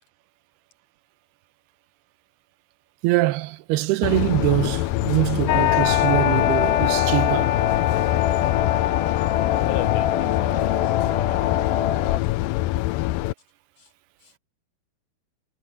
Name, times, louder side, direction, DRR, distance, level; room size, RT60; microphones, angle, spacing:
voice 1, 3.0-7.6, right 18 dB, 85° right, 2.8 m, -23 dB
sound 1, 4.0-13.3, left 17 dB, 90° left, 2.0 m, -25 dB
sound 2, 5.5-12.2, left 11 dB, 70° left, 2.3 m, -23 dB
voice 2, 9.6-11.6 13.8-13.9 14.2-14.3, left 8 dB, 45° left, 5.2 m, -37 dB
omnidirectional pair, 4.5 m